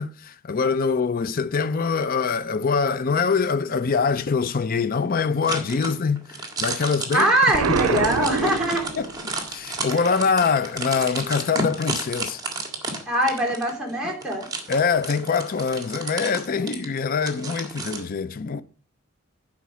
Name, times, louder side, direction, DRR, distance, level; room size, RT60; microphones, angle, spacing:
voice 1, 0.0-7.3 7.7-8.1 8.4-9.1 9.5-12.4 14.7-18.6, left 5 dB, 45° left, 0.5 m, -24 dB
sound 1, 5.4-18.0, right 2 dB, 20° right, 1.8 m, -32 dB
voice 2, 7.1-8.9 13.1-14.5 16.6-16.7, right 1 dB, 5° right, 3.7 m, -22 dB
Explosion, 7.5-9.4, right 5 dB, 75° right, 0.6 m, -25 dB
11.5 x 5.1 x 6.2 m
head